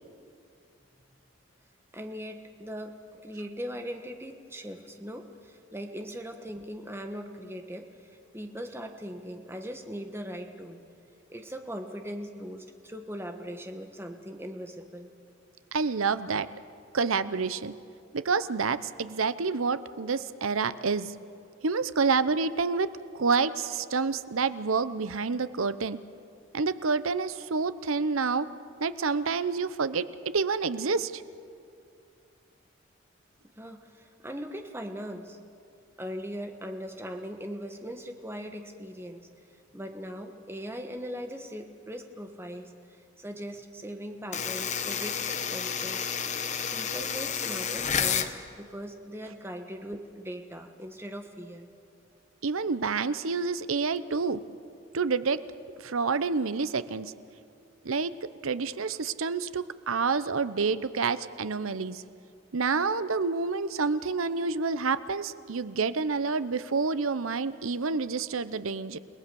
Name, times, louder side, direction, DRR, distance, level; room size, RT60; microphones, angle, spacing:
voice 1, 1.9-7.9 8.3-10.8 11.3-15.1 33.6-35.4 36.0-39.3 39.7-46.1 46.7-51.7, equal, 10° right, 5 dB, 1.4 m, -40 dB
voice 2, 15.7-16.5 16.9-17.7 18.1-21.1 21.6-22.9 23.1-26.0 26.5-28.5 28.8-30.1 30.3-31.2 52.4-54.4 54.9-55.4 55.8-57.1 57.8-58.1 58.4-62.0 62.5-69.0, right 4 dB, 80° right, 14 dB, 0.8 m, -28 dB
sound 1, 44.3-48.3, left 7 dB, 35° left, 0.9 m, -30 dB
30.0 x 18.5 x 7.0 m, 2.5 s
head